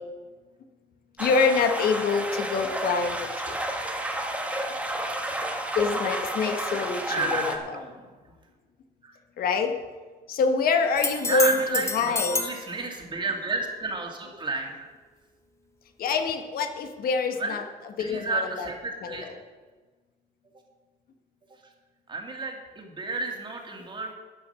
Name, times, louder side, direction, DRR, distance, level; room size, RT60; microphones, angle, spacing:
voice 1, 1.2-3.6 5.7-7.8 9.4-9.7 10.3-12.4 16.0-17.6 18.0-18.7 19.0-19.2, left 4 dB, 60° left, 6 dB, 1.3 m, -26 dB
sound 1, 1.2-7.6, right 1 dB, 10° right, 1.5 m, -31 dB
voice 2, 7.1-8.2 9.0-9.2 11.2-14.7 17.4-17.6 18.0-19.3 22.1-24.1, right 3 dB, 30° right, 2 dB, 2.3 m, -31 dB
sound 2, 11.0-12.6 16.3-16.4, left 3 dB, 15° left, 1.0 m, -29 dB
12.5 x 8.9 x 5.6 m, 1.4 s
cardioid pair, 110°, 17 cm